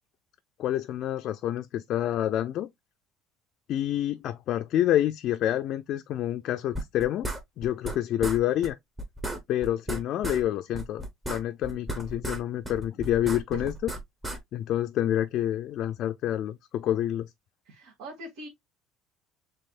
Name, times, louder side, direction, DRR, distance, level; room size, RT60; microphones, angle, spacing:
voice 1, 0.6-2.7 3.7-7.3 7.6-8.8 9.5-13.9 14.5-17.3, left 12 dB, 45° left, 0.3 m, -28 dB
sound 1, 6.7-8.0 8.2-8.4 8.6-8.7 9.0-10.4 10.7-12.4 12.6-14.4, right 1 dB, 15° right, 1.0 m, -34 dB
voice 2, 17.6-18.5, right 2 dB, 75° right, 1.8 m, -42 dB
5.4 x 3.5 x 2.3 m
cardioid pair, 170°, 0 cm